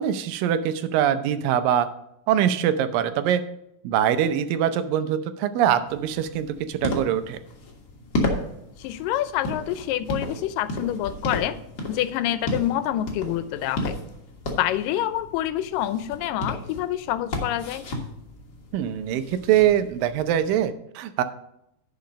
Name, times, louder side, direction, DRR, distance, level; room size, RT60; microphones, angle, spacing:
voice 1, 0.0-1.9 2.3-3.4 3.8-7.4 18.7-21.2, right 10 dB, 90° right, 11 dB, 2.4 m, -23 dB
sound 1, 5.9-20.6, left 1 dB, 45° left, 1.5 m, -34 dB
voice 2, 8.8-11.6 11.9-14.0 14.6-17.9, left 12 dB, 85° left, 13 dB, 2.2 m, -27 dB
10.5 x 5.7 x 5.2 m, 0.80 s
omnidirectional pair, 3.9 m